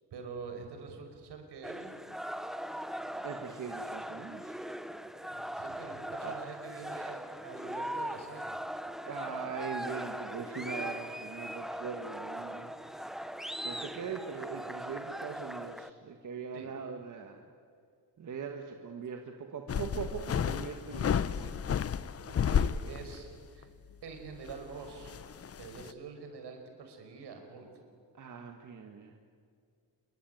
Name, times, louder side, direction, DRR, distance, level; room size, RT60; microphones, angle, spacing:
voice 1, 0.1-1.9 5.3-8.6 13.1-13.2 16.5-16.7 22.3-23.3 23.5-23.7 24.0-25.1 25.6-27.7, right 5 dB, 70° right, 5 dB, 5.3 m, -46 dB
sound 1, 1.6-15.9, equal, ahead, 0.8 m, -40 dB
voice 2, 3.2-4.6 5.3-5.8 6.2-6.4 9.1-12.7 13.6-17.4 18.2-21.5 28.1-29.1, right 6 dB, 45° right, 4 dB, 1.7 m, -41 dB
sound 2, 19.7-23.3 23.6-23.7 24.3-25.9, left 8 dB, 35° left, 0.7 m, -32 dB
27.0 x 23.0 x 9.4 m, 2.2 s
cardioid pair, 135°, 42 cm